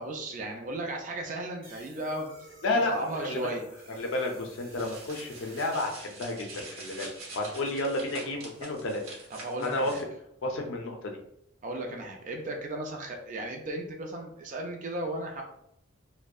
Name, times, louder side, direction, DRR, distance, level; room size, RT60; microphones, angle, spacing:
voice 1, 0.0-2.5 2.8-3.6 9.3-10.0 11.6-15.4, right 1 dB, 35° right, 2 dB, 0.3 m, -35 dB
sound 1, 1.6-6.0, right 2 dB, 55° right, 1.2 m, -52 dB
voice 2, 2.6-3.4 4.0-7.1 7.4-9.0 9.6-9.9 10.4-11.2, left 2 dB, 65° left, 2 dB, 0.4 m, -31 dB
sound 2, 4.8-10.0, right 2 dB, 75° right, 0.9 m, -45 dB
2.6 x 2.1 x 2.3 m, 0.75 s
head